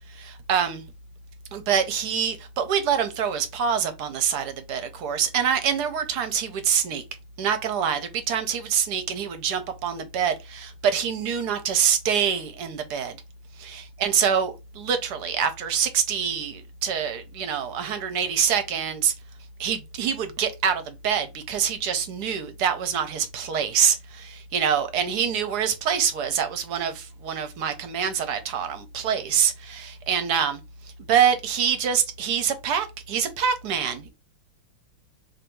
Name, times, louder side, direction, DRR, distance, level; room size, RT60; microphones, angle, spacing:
voice 1, 0.1-0.8 1.5-7.0 7.4-13.2 13.6-19.1 19.6-30.6 31.1-34.1, right 7 dB, 65° right, 1.1 m, -25 dB
3.3 x 2.6 x 4.4 m
omnidirectional pair, 2.2 m